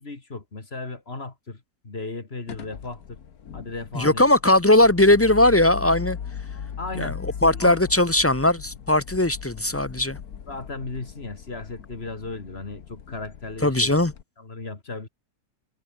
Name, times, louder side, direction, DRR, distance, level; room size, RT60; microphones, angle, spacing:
voice 1, 0.0-3.2 3.5-4.3 6.8-7.8 10.5-14.0 14.4-15.1, left 3 dB, 40° left, 2.7 m, -36 dB
sound 1, 2.5-14.2, left 8 dB, 75° left, 1.8 m, -39 dB
voice 2, 3.9-6.2 6.9-7.1 7.4-10.2 13.6-14.1, left 1 dB, 15° left, 0.7 m, -19 dB
omnidirectional pair, 1.6 m